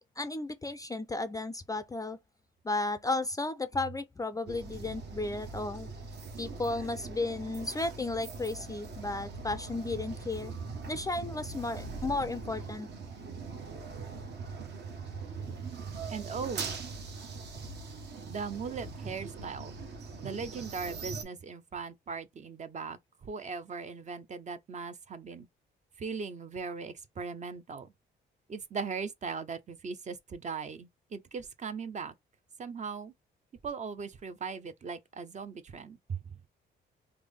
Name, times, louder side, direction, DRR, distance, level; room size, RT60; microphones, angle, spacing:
voice 1, 0.0-2.2 2.6-5.9 6.4-10.5 10.9-12.9, left 2 dB, 20° left, 0.3 m, -34 dB
sound 1, 4.5-21.2, right 4 dB, 60° right, 0.9 m, -41 dB
voice 2, 16.1-16.8 18.3-19.7 20.2-25.5 26.0-27.9 28.5-32.1 32.6-33.1 33.6-36.2, right 5 dB, 35° right, 0.5 m, -39 dB
3.4 x 2.1 x 3.4 m
cardioid pair, 90°, 20 cm